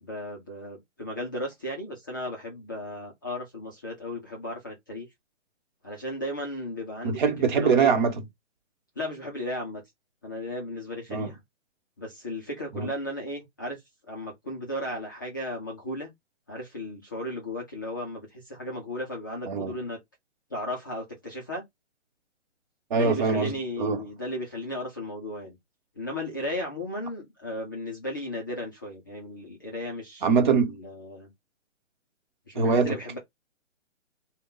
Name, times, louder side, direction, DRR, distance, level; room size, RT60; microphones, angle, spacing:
voice 1, 0.0-5.1 5.8-7.2 7.5-7.9 9.0-9.8 10.2-11.4 12.0-13.8 14.1-16.1 16.5-20.0 20.5-21.6 22.9-25.6 26.0-31.3 32.5-33.2, left 1 dB, 15° left, 0.4 m, -35 dB
voice 2, 7.0-8.3 11.1-11.3 12.7-12.9 19.5-19.7 22.9-24.0 30.2-30.7 32.5-33.0, right 5 dB, 40° right, 1.1 m, -23 dB
3.5 x 2.2 x 3.8 m
hypercardioid pair, 150°, 37 cm